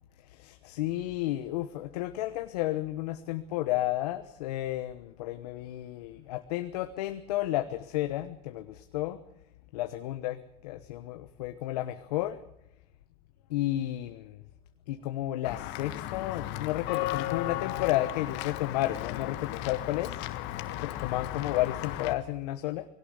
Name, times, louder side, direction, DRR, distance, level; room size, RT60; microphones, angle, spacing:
voice 1, 0.3-9.2 9.7-12.4 13.5-14.4 14.9-20.3 20.8-22.9, left 15 dB, 85° left, 9 dB, 1.1 m, -32 dB
Walk footsteps / Bell, 15.4-22.1, left 14 dB, 70° left, 1.7 m, -35 dB
20.5 x 17.5 x 8.1 m, 0.83 s
supercardioid pair, 95°, 20 cm